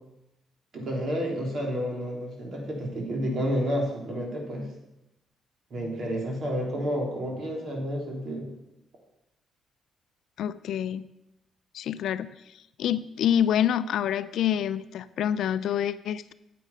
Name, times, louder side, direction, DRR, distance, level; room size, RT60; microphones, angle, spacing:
voice 1, 0.7-4.6 5.7-8.4, equal, 55° right, 0 dB, 3.2 m, -30 dB
voice 2, 10.4-11.1 11.7-12.3 12.8-16.3, left 10 dB, 75° left, 15 dB, 0.4 m, -27 dB
8.9 x 8.5 x 5.3 m, 0.90 s
cardioid pair, 90°, 0 cm